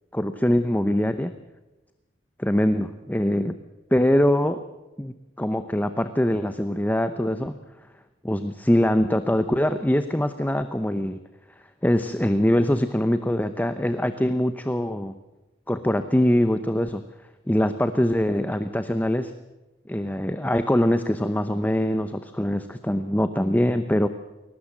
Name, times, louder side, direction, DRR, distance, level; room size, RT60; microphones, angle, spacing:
voice 1, 0.1-1.3 2.4-3.5 3.9-4.6 5.0-7.6 8.2-11.2 11.8-15.1 15.7-17.0 17.5-19.3 19.9-24.1, left 1 dB, 10° left, 10 dB, 0.8 m, -23 dB
22.0 x 19.5 x 7.4 m, 1.1 s
head